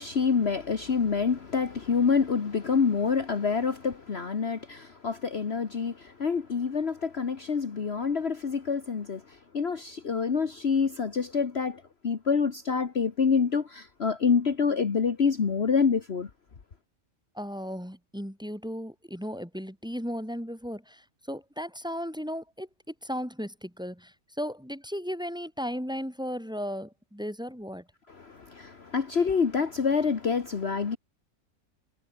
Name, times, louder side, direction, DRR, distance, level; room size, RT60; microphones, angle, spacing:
voice 1, 0.0-16.3 28.1-31.0, left 5 dB, 50° left, 1.6 m, -27 dB
voice 2, 17.3-27.9, equal, 5° right, 3.8 m, -36 dB
omnidirectional pair, 1.5 m